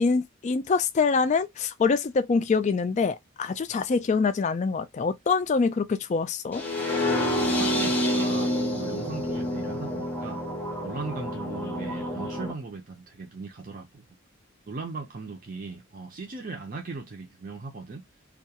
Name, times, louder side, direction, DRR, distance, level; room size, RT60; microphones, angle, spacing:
voice 1, 0.0-6.6, left 4 dB, 35° left, 0.3 m, -25 dB
sound 1, 6.5-12.5, left 1 dB, 10° left, 0.7 m, -28 dB
voice 2, 7.4-10.4 10.8-14.1 14.7-18.0, right 4 dB, 40° right, 0.5 m, -38 dB
2.4 x 2.2 x 2.7 m
head